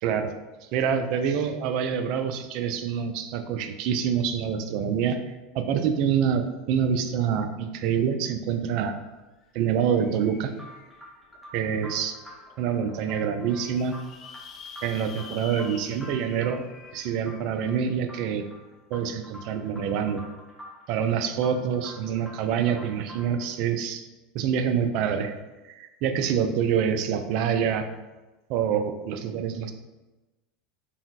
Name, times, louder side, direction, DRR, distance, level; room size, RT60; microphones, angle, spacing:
voice 1, 0.0-0.3 0.7-5.2 5.5-9.0 9.5-10.5 11.5-12.2 12.6-14.0 14.8-16.6 16.9-18.4 18.9-20.2 20.9-24.1 24.3-25.3 25.6-27.8 28.5-29.7, right 7 dB, 55° right, 7 dB, 0.3 m, -26 dB
sound 1, 8.8-8.9 9.1-11.2 11.8-11.9 12.3-12.4 12.6-12.7 13.2-17.8, left 6 dB, 40° left, 0.4 m, -47 dB
sound 2, 10.5-23.5, left 1 dB, 5° left, 0.8 m, -48 dB
3.8 x 2.0 x 2.4 m, 1.1 s
hypercardioid pair, 80°, 0 cm